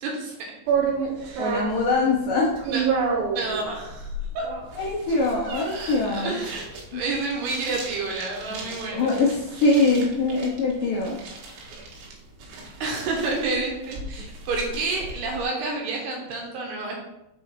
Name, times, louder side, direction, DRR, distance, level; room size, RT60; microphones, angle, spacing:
voice 1, 0.0-0.3 1.2-1.5 2.7-2.8 3.3-4.1 4.3-4.4 5.4-9.1 12.8-17.0, right 3 dB, 70° right, 0 dB, 3.0 m, -29 dB
sound 1, 0.7-15.4, right 5 dB, 85° right, 3.7 m, -32 dB
voice 2, 1.4-2.5 4.8-6.4 6.9-7.0 8.9-11.2, left 3 dB, 80° left, -3 dB, 1.9 m, -23 dB
6.7 x 4.7 x 4.7 m, 0.89 s
omnidirectional pair, 5.2 m